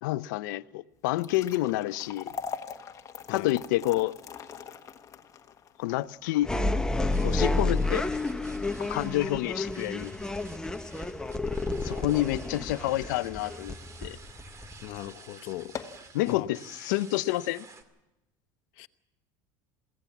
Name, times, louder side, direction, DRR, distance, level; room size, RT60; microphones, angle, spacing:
voice 1, 0.0-2.3 3.3-4.1 5.8-6.5 7.2-8.1 8.8-10.1 11.8-13.8 14.0-14.2 16.1-17.6, left 16 dB, 85° left, 0.6 m, -28 dB
sound 1, 1.0-13.3 13.7-13.8 14.5-14.7 15.0-15.1 15.5-16.1, left 6 dB, 30° left, 1.4 m, -43 dB
sound 2, 6.4-15.1, left 2 dB, 5° left, 0.9 m, -30 dB
sound 3, 7.0-17.8, right 4 dB, 30° right, 2.3 m, -51 dB
voice 2, 14.8-15.8 16.3-16.5 18.8-18.9, left 16 dB, 65° left, 1.0 m, -38 dB
22.5 x 16.5 x 7.1 m
supercardioid pair, 120°, 10 cm